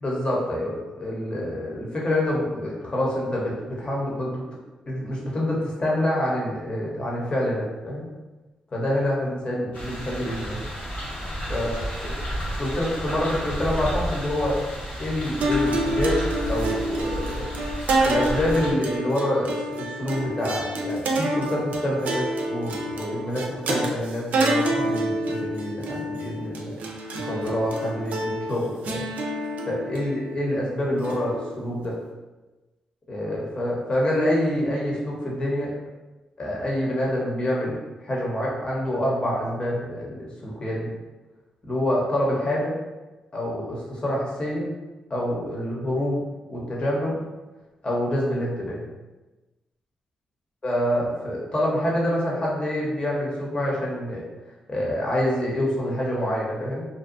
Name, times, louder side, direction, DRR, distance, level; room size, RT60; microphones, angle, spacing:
voice 1, 0.0-4.5 4.9-8.1 8.7-10.6 11.5-11.7 12.0-12.1 12.6-14.6 15.0-16.2 16.5-17.5 18.0-26.8 27.1-29.0 29.7-32.0 33.1-35.7 36.4-37.8 38.0-40.9 41.7-42.8 43.3-44.8 45.1-47.2 47.8-48.8 50.6-54.2 54.7-56.9, left 1 dB, 35° left, -4 dB, 0.9 m, -27 dB
sound 1, 9.7-18.7, equal, 70° left, 1.0 m, -31 dB
sound 2, 15.4-31.9, right 1 dB, 75° right, 0.4 m, -28 dB
2.6 x 2.2 x 2.5 m, 1.1 s
supercardioid pair, 55°, 3 cm